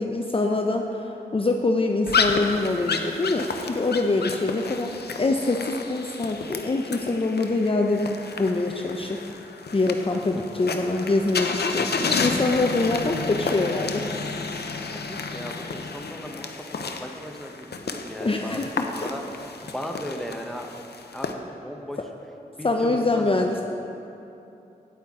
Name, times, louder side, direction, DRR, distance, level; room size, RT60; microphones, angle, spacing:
voice 1, 0.0-4.9 5.2-9.2 9.7-14.1 18.2-19.1 22.6-23.6, left 2 dB, 35° left, 2 dB, 0.5 m, -24 dB
sound 1, 2.1-21.3, left 4 dB, 70° left, 0.6 m, -31 dB
voice 2, 10.1-10.4 14.9-19.2 19.6-20.8 21.1-22.0 22.5-23.5, equal, ahead, 2 dB, 0.9 m, -37 dB
9.4 x 8.8 x 3.7 m, 2.8 s
cardioid pair, 45°, 17 cm